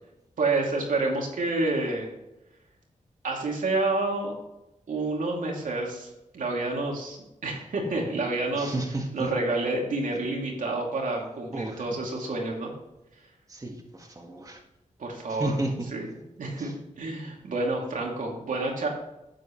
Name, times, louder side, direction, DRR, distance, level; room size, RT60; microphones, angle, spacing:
voice 1, 0.4-2.1 3.2-4.3 4.9-7.2 7.4-8.7 9.1-12.7 15.0-15.6 15.9-16.1 16.4-18.9, right 2 dB, 85° right, -1 dB, 2.6 m, -29 dB
voice 2, 8.5-9.3 11.5-11.8 13.5-14.6 15.3-15.9 16.6-16.7, right 1 dB, 25° right, 0 dB, 1.7 m, -32 dB
11.5 x 7.9 x 3.1 m, 0.92 s
wide cardioid pair, 85°, 13 cm